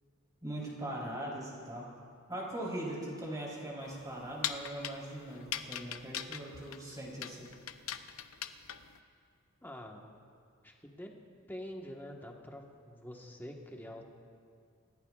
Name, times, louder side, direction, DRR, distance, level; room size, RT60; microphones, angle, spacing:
voice 1, 0.4-1.9 2.3-7.5, right 1 dB, 20° right, -4 dB, 3.7 m, -40 dB
sound 1, 3.8-9.0, left 10 dB, 90° left, 0.7 m, -41 dB
voice 2, 9.6-10.1 10.6-11.1 11.5-14.0, equal, 10° left, 1 dB, 1.3 m, -46 dB
28.5 x 16.5 x 2.4 m, 2.3 s
head